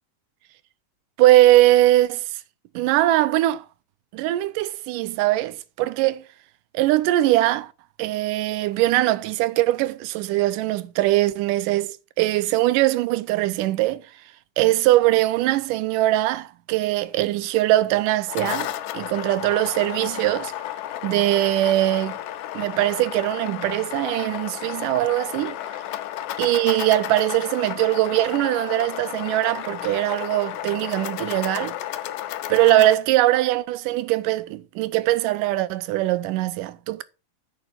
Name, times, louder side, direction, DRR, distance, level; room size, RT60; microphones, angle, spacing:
voice 1, 1.2-2.4 2.8-3.6 4.1-6.3 6.7-7.7 8.0-14.0 14.6-20.5 21.0-22.2 22.5-25.6 26.4-31.8 32.5-37.0, right 15 dB, 85° right, 2.2 m, -21 dB
sound 1, 18.1-33.0, left 12 dB, 85° left, 2.4 m, -33 dB
9.6 x 5.3 x 5.6 m
omnidirectional pair, 3.7 m